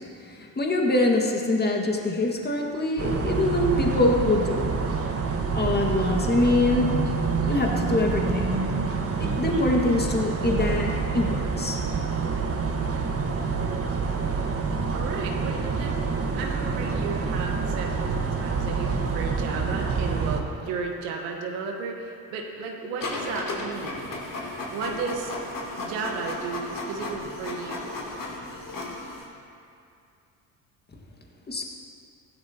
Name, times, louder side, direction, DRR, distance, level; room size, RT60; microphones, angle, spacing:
voice 1, 0.3-4.7 5.5-6.9 7.5-8.5 9.2-11.8 31.5-31.6, left 2 dB, 20° left, 0 dB, 1.9 m, -24 dB
sound 1, 3.0-20.4, right 4 dB, 30° right, 1.5 m, -27 dB
voice 2, 14.9-16.0 16.3-24.1 24.7-25.3 25.8-27.9, right 5 dB, 80° right, 1 dB, 1.5 m, -34 dB
Printer, 23.0-29.3, left 2 dB, 50° left, 3.2 m, -34 dB
15.5 x 12.5 x 3.0 m, 2.5 s
hypercardioid pair, 65°, 44 cm